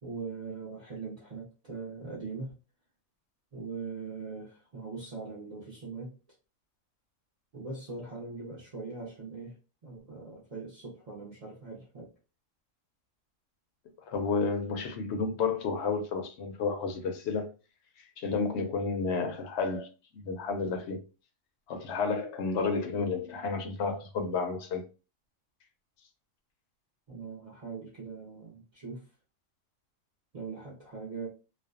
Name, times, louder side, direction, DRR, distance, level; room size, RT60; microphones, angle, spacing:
voice 1, 0.0-2.6 3.5-6.2 7.5-9.6 9.8-12.1 27.1-29.1 30.3-31.3, right 4 dB, 45° right, 0.5 m, -41 dB
voice 2, 14.1-17.5 18.0-19.9 20.1-21.0 21.7-24.8, left 4 dB, 65° left, 0.8 m, -31 dB
2.5 x 2.1 x 2.3 m
omnidirectional pair, 1.4 m